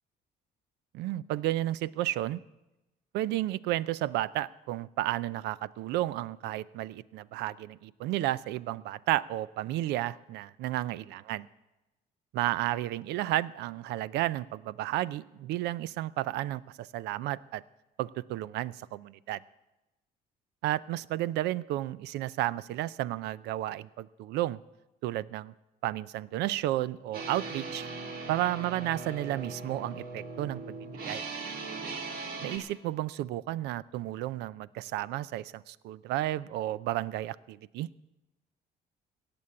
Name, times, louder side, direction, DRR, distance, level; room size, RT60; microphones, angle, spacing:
voice 1, 0.9-2.4 3.1-11.5 12.3-17.6 18.0-19.4 20.6-24.6 25.0-25.5 25.8-27.9 28.3-30.7 31.1-31.2 32.4-37.9, right 15 dB, 85° right, 20 dB, 0.5 m, -32 dB
sound 1, 27.1-32.6, right 3 dB, 60° right, 2.1 m, -39 dB
17.0 x 7.0 x 8.6 m, 0.99 s
cardioid pair, 110°, 17 cm